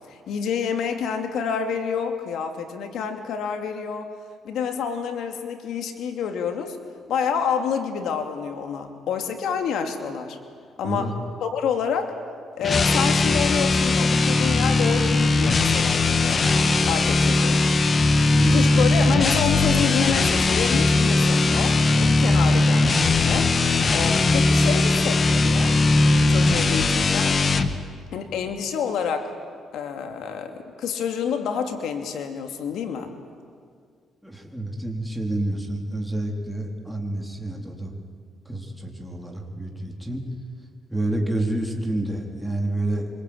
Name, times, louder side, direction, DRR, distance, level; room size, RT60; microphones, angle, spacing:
voice 1, 0.1-4.1 4.4-6.8 7.1-10.4 10.8-12.2 12.6-16.5 16.9-17.7 18.5-23.5 23.9-25.8 26.2-27.4 28.1-29.3 29.7-33.1, left 7 dB, 80° left, 5 dB, 2.9 m, -28 dB
voice 2, 10.8-11.1 18.1-18.7 34.2-37.9 38.5-40.2 40.9-43.1, right 1 dB, ahead, 0 dB, 4.0 m, -29 dB
sound 1, 12.6-27.7, left 3 dB, 40° left, 1.7 m, -19 dB
25.5 x 25.5 x 8.9 m, 2.1 s
cardioid pair, 90°, 0 cm